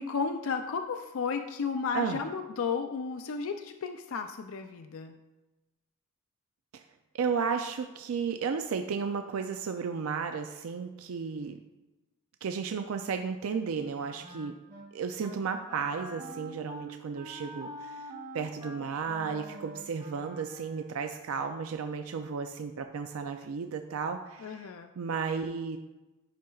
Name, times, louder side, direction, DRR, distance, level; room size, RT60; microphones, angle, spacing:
voice 1, 0.0-5.2 24.4-24.9, left 5 dB, 70° left, 7 dB, 0.4 m, -33 dB
voice 2, 7.1-11.6 12.4-14.5 14.9-18.1 18.3-24.7 25.0-25.8, right 5 dB, 75° right, 6 dB, 0.4 m, -33 dB
Wind instrument woodwind instrument, 13.7-14.9 15.2-15.4 15.7-21.0, equal, 35° right, 1.4 m, -45 dB
10.0 x 5.8 x 2.4 m, 1.1 s
head